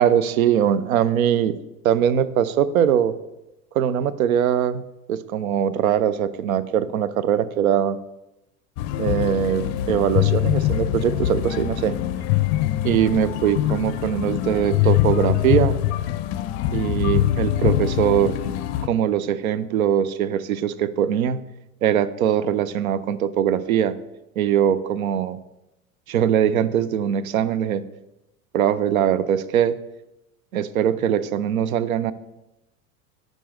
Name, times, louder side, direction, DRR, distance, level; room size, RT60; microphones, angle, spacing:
voice 1, 0.0-1.6 1.8-3.1 3.7-8.0 9.0-12.0 12.8-15.8 16.7-18.3 18.8-21.4 21.8-24.0 24.4-25.4 26.1-27.8 28.5-29.8 30.5-32.1, right 9 dB, 75° right, 16 dB, 0.6 m, -21 dB
sound 1, 8.8-18.9, left 13 dB, 50° left, 0.5 m, -23 dB
8.6 x 5.2 x 3.3 m, 0.95 s
figure-of-eight pair, 80°, 43 cm